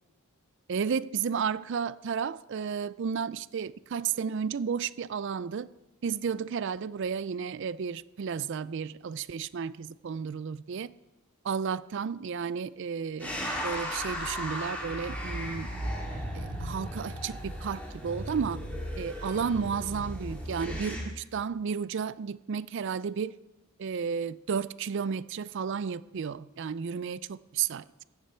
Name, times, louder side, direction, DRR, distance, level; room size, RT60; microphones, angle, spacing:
voice 1, 0.7-5.7 6.0-10.9 11.4-13.3 13.6-15.7 16.3-18.6 19.0-23.3 23.8-27.8, right 6 dB, 55° right, 0.4 m, -32 dB
sound 1, 13.2-21.0, equal, 5° left, 2.6 m, -36 dB
15.5 x 10.5 x 4.4 m
head